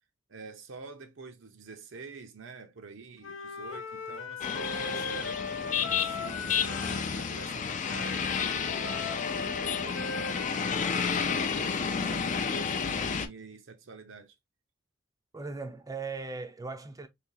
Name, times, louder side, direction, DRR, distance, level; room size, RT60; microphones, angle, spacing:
voice 1, 0.3-5.5 5.9-14.3, right 4 dB, 70° right, 0.7 m, -47 dB
Wind instrument woodwind instrument, 3.2-7.0 7.9-11.5, left 5 dB, 80° left, 0.7 m, -39 dB
sound 1, 4.4-13.3, left 6 dB, 40° left, 0.4 m, -31 dB
voice 2, 15.3-17.1, right 4 dB, 20° right, 0.5 m, -38 dB
3.3 x 2.8 x 2.6 m
head